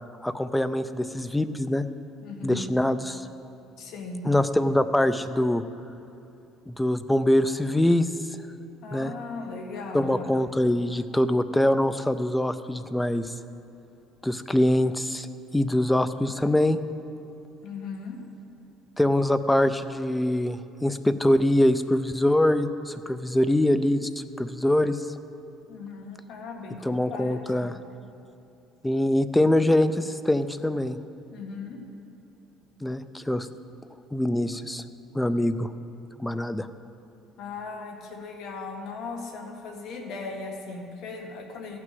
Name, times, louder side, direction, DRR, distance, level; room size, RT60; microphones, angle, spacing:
voice 1, 0.2-1.9 2.4-3.3 4.2-5.6 6.7-8.1 8.9-9.1 9.9-13.3 14.2-15.3 15.5-16.8 19.0-24.1 24.4-25.0 26.8-27.7 28.8-31.0 32.8-33.5 34.1-34.8 35.1-35.7 36.2-36.7, left 1 dB, 5° left, 12 dB, 0.4 m, -23 dB
voice 2, 2.2-2.7 3.8-4.2 8.8-10.3 17.6-18.2 25.7-27.7 31.3-31.8 37.4-41.8, left 4 dB, 60° left, 3 dB, 1.6 m, -38 dB
14.5 x 6.1 x 7.7 m, 2.8 s
cardioid pair, 150°, 0 cm